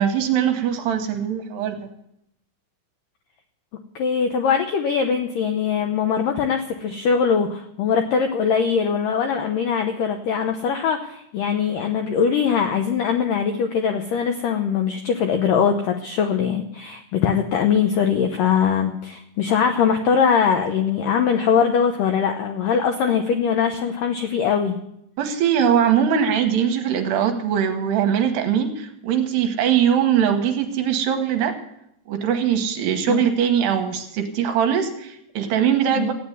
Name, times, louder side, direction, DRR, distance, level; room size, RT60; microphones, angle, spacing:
voice 1, 0.0-1.9 25.2-31.6 32.1-36.1, right 8 dB, 75° right, 5 dB, 3.0 m, -21 dB
voice 2, 4.0-24.8 33.1-33.2 36.0-36.1, left 7 dB, 80° left, 5 dB, 2.0 m, -21 dB
15.0 x 9.5 x 8.0 m, 0.77 s
omnidirectional pair, 5.1 m